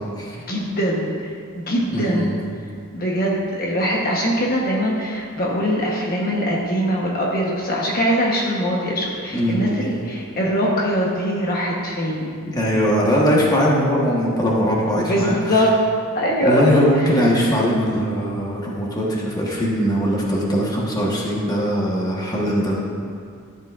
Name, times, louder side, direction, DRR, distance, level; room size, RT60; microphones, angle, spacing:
voice 1, 0.5-1.1 1.6-2.3 2.9-12.3 15.1-15.7 16.1-16.6, equal, 45° left, -3 dB, 1.1 m, -22 dB
voice 2, 1.9-2.3 9.3-9.8 12.5-15.6 16.4-22.8, equal, 20° left, -4 dB, 1.3 m, -20 dB
13.0 x 8.4 x 2.5 m, 2.2 s
head